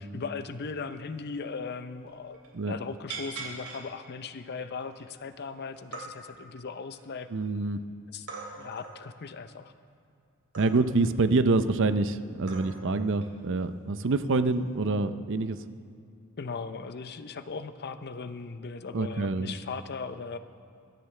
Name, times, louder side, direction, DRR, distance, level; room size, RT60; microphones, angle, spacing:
voice 1, 0.0-2.4 2.6-7.3 8.1-8.3 8.5-9.7 16.4-20.4, left 4 dB, 50° left, 11 dB, 0.6 m, -38 dB
sound 1, 1.2-1.3 1.6-1.7 2.0-2.5 3.1-3.8 4.4-4.5 4.9-5.5 5.7-6.1 6.6-7.5 8.3-9.0 10.5-11.0 11.9-12.0 12.5-12.9 13.2-13.4 14.5-14.8, right 4 dB, 75° right, 3.3 m, -41 dB
voice 2, 7.3-7.8 10.6-15.6 18.9-19.5, right 3 dB, 60° right, 11 dB, 0.6 m, -26 dB
22.0 x 13.5 x 3.3 m, 2.5 s
head